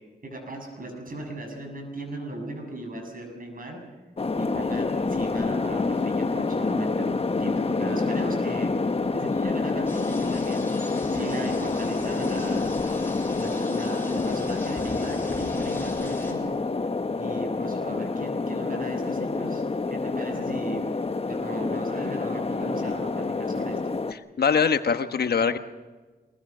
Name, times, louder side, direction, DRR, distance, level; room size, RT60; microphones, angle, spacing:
voice 1, 0.2-3.8 4.4-8.7 9.1-10.7 11.1-12.7 13.4-16.6 17.2-19.6 19.9-20.8 21.2-23.8, right 1 dB, 55° right, 4 dB, 7.2 m, -37 dB
sound 1, 4.2-24.1, left 3 dB, 35° left, 1.0 m, -27 dB
sound 2, 9.9-16.3, left 1 dB, 15° left, 7.8 m, -42 dB
voice 2, 24.4-25.6, left 6 dB, 70° left, 9 dB, 1.2 m, -22 dB
23.5 x 21.0 x 6.1 m, 1.3 s
cardioid pair, 55°, 17 cm